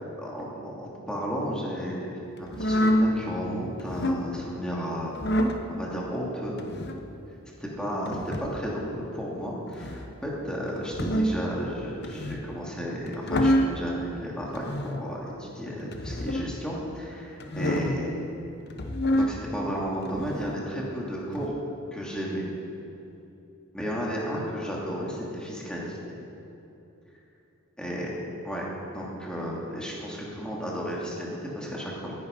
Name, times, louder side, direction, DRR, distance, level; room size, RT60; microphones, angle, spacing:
voice 1, 0.2-5.2 5.7-6.6 7.6-18.2 19.1-21.5 21.9-22.5 23.7-26.0 27.8-28.2 28.4-32.1, equal, 5° left, -4 dB, 2.7 m, -33 dB
sound 1, 2.5-3.1 3.8-4.2 5.1-5.6 6.6-7.0 8.1-8.6 9.7-10.1 10.8-11.4 12.0-12.5 13.1-13.8 14.5-15.0 15.9-16.5 17.4-18.0 18.7-19.3 20.0-20.5 21.3-21.5, equal, 50° left, 1.1 m, -26 dB
18.5 x 11.0 x 5.4 m, 2.9 s
head